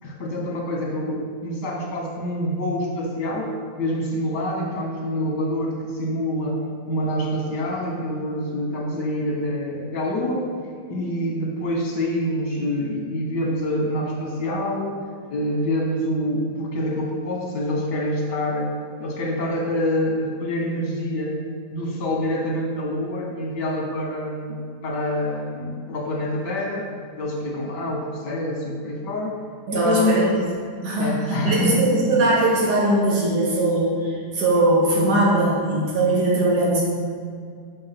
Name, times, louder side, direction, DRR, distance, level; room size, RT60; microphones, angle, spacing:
voice 1, 0.0-6.6 6.8-10.5 10.9-15.0 15.3-18.7 19.0-21.3 21.7-26.8 27.2-29.4 29.7-30.3 31.0-31.8, left 1 dB, 75° left, -1 dB, 1.9 m, -26 dB
voice 2, 29.7-30.3 30.8-36.8, right 2 dB, 75° right, -5 dB, 2.2 m, -20 dB
6.5 x 5.7 x 5.8 m, 2.2 s
omnidirectional pair, 1.8 m